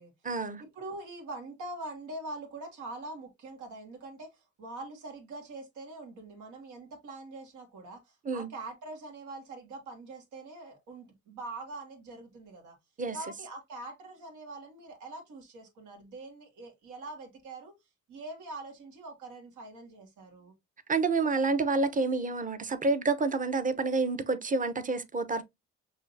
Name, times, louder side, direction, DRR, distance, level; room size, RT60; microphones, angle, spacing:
voice 1, 0.2-0.6 8.3-8.5 13.0-13.2 20.9-25.4, right 3 dB, 25° right, 0.8 m, -28 dB
voice 2, 0.8-12.8 13.1-17.7 18.1-20.5, right 2 dB, 80° right, 2.0 m, -43 dB
6.2 x 2.9 x 2.7 m
cardioid pair, 90°, 30 cm